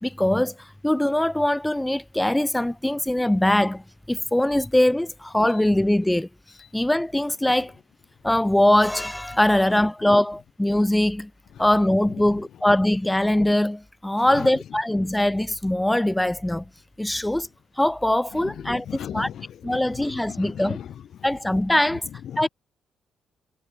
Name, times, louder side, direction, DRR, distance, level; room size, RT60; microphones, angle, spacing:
voice 1, 0.0-6.3 6.7-7.7 8.2-11.3 11.6-16.6 17.0-17.5 17.8-18.8 19.1-19.3 19.6-20.8 21.2-22.0 22.4-22.5, left 1 dB, 10° left, 2.6 m, -22 dB
voice 2, 14.1-14.5 17.0-17.2 18.3-21.3 21.9-22.5, left 9 dB, 65° left, 8.0 m, -38 dB
hypercardioid pair, 50°, 0 cm